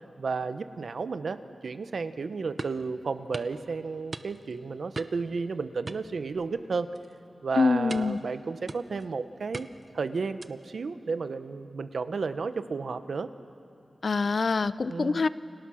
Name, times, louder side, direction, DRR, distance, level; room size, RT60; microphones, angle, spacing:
voice 1, 0.2-6.9 7.4-9.7 9.9-13.3 14.9-15.2, right 4 dB, 75° right, 11 dB, 1.0 m, -32 dB
sound 1, 2.6-2.9 3.3-3.6 4.1-4.6 4.9-5.3 5.9-6.6 6.9-7.2 7.9-8.2 8.7-9.1 9.5-9.9 10.4-10.7, right 3 dB, 45° right, 0.8 m, -40 dB
voice 2, 7.5-8.2 14.0-15.3, left 4 dB, 60° left, 15 dB, 0.6 m, -25 dB
29.5 x 29.0 x 6.4 m, 2.6 s
wide cardioid pair, 100°, 0 cm